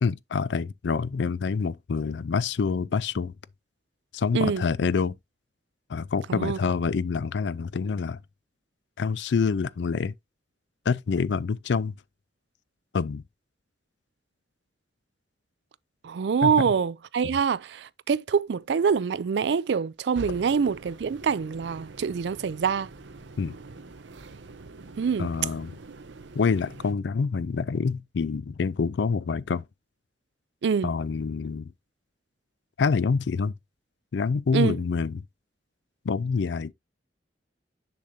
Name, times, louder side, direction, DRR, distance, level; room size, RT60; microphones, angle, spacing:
voice 1, 0.0-3.3 4.1-5.2 5.9-8.2 9.0-10.1 10.9-12.0 12.9-13.2 16.4-16.5 23.4-23.6 25.2-25.7 26.3-29.6 30.8-31.7 32.8-33.5 34.1-35.2 36.0-36.7, left 5 dB, 80° left, 0.4 m, -26 dB
voice 2, 16.0-22.9 25.0-25.3 30.6-30.9 34.5-34.8, right 6 dB, 70° right, 0.4 m, -25 dB
sound 1, 20.1-26.9, right 3 dB, 90° right, 0.7 m, -45 dB
6.9 x 6.4 x 2.7 m
head